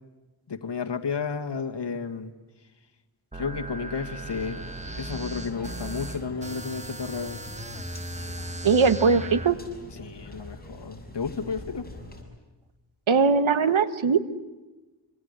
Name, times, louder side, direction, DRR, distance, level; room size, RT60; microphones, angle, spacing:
voice 1, 0.5-2.3 3.3-4.6 5.0-7.4 10.0-11.9, left 5 dB, 60° left, 5 dB, 2.0 m, -32 dB
sound 1, 3.3-9.5, right 1 dB, 15° right, 1.5 m, -37 dB
sound 2, 4.2-12.2, left 1 dB, 20° left, 6.5 m, -43 dB
voice 2, 8.6-9.6 13.1-14.2, right 5 dB, 85° right, 12 dB, 1.5 m, -20 dB
26.5 x 26.0 x 8.3 m, 1.1 s
wide cardioid pair, 105°, 46 cm